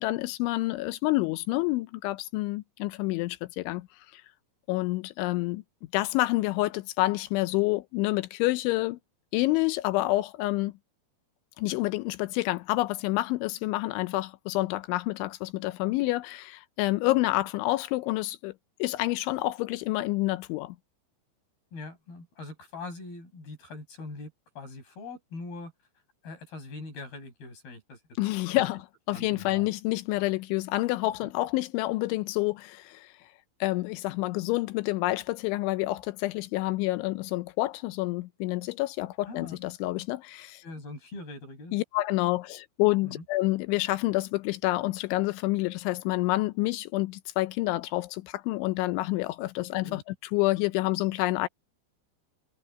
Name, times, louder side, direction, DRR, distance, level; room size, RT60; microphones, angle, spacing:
voice 1, 0.0-3.9 4.1-4.2 4.7-5.6 5.9-9.0 9.3-10.7 11.6-18.5 18.8-20.8 28.2-28.8 29.1-33.1 33.6-40.6 41.7-51.5, left 19 dB, 85° left, 3.1 m, -28 dB
voice 2, 17.0-17.4 21.7-25.7 26.2-28.6 29.1-29.7 39.3-39.6 40.6-41.8 43.0-43.2 49.6-50.0, left 3 dB, 55° left, 9.3 m, -42 dB
omnidirectional pair, 5.4 m